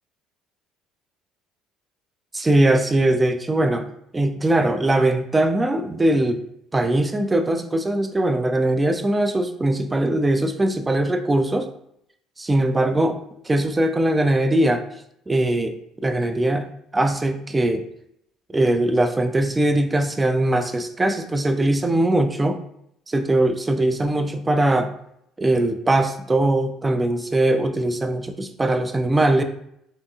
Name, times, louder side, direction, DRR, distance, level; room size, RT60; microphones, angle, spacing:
voice 1, 2.3-3.9 4.1-6.4 6.7-11.7 12.4-13.2 13.5-14.8 15.3-17.8 18.5-22.6 23.1-24.9 25.4-29.4, right 1 dB, 20° right, 8 dB, 0.3 m, -21 dB
2.8 x 2.6 x 2.3 m, 0.75 s
supercardioid pair, 80°, 0 cm